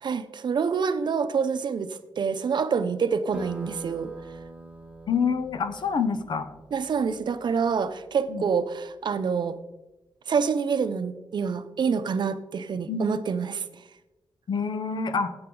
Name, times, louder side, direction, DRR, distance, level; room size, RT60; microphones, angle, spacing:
voice 1, 0.0-4.1 6.7-9.6 10.3-13.8, right 6 dB, 65° right, 11 dB, 0.7 m, -27 dB
sound 1, 3.3-8.5, right 3 dB, 15° right, 1.5 m, -45 dB
voice 2, 5.1-6.5 8.3-8.4 12.9-13.0 14.5-15.3, left 5 dB, 65° left, 10 dB, 0.9 m, -26 dB
15.5 x 8.7 x 3.9 m, 1.1 s
wide cardioid pair, 130°, 8 cm